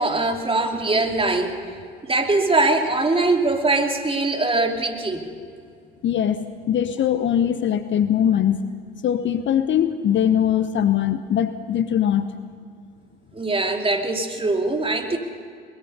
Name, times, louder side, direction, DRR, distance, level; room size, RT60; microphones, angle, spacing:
voice 1, 0.0-1.6 2.0-5.3 13.3-15.2, right 2 dB, 20° right, 3 dB, 2.8 m, -22 dB
voice 2, 6.0-8.6 9.0-12.3, left 9 dB, 40° left, 11 dB, 1.0 m, -21 dB
22.0 x 21.0 x 5.6 m, 2.3 s
figure-of-eight pair, 60°, 31 cm